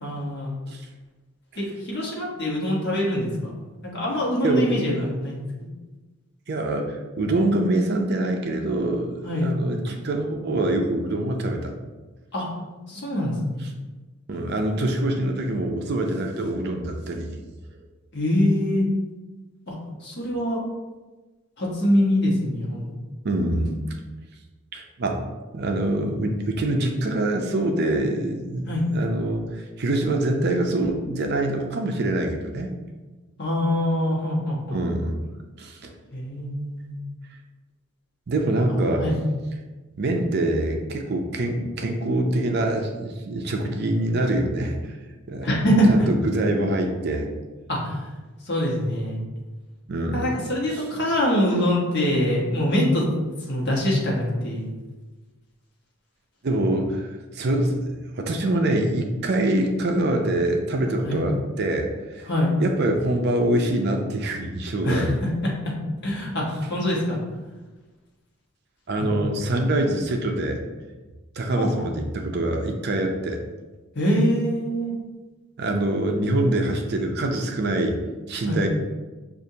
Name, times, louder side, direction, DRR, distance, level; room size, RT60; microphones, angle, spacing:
voice 1, 0.0-0.5 1.6-3.5 3.8-5.4 9.2-9.5 12.3-12.5 12.9-13.6 18.1-18.8 19.7-19.8 20.0-20.6 21.6-23.0 23.5-23.7 28.7-28.9 33.4-34.8 36.1-37.0 38.7-39.2 45.4-45.9 47.7-48.0 48.5-49.2 50.1-53.0 53.5-54.7 61.1-61.2 62.3-62.5 64.8-65.1 66.0-67.2 69.0-69.1 71.6-71.8 73.9-74.9 78.5-78.6, equal, 50° left, -3 dB, 1.2 m, -24 dB
voice 2, 4.4-5.1 6.5-11.7 14.3-17.3 23.2-23.8 24.7-32.7 34.7-35.2 35.6-35.9 38.3-39.1 40.0-45.0 45.3-45.5 45.9-47.3 49.9-50.3 50.7-50.8 56.4-57.1 57.3-62.3 62.6-65.1 68.9-70.6 71.4-73.4 75.6-78.0 78.3-78.7, right 1 dB, 50° right, 3 dB, 0.5 m, -25 dB
6.3 x 2.5 x 2.7 m, 1.2 s
head